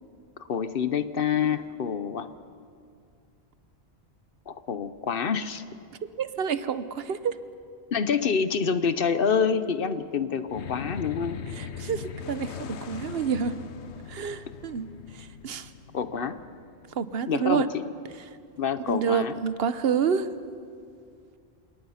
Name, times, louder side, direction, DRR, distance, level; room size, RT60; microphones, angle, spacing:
voice 1, 0.5-2.3 4.5-5.6 7.9-11.4 15.9-16.4 17.3-17.8 18.6-19.3, left 6 dB, 60° left, 12 dB, 1.0 m, -27 dB
voice 2, 6.2-7.4 11.5-13.5 14.1-14.9 15.1-15.7 16.9-17.7 18.9-20.3, right 7 dB, 65° right, 13 dB, 1.0 m, -28 dB
sound 1, 10.5-17.1, left 8 dB, 90° left, 1.1 m, -40 dB
28.5 x 18.5 x 5.7 m, 2.3 s
omnidirectional pair, 1.1 m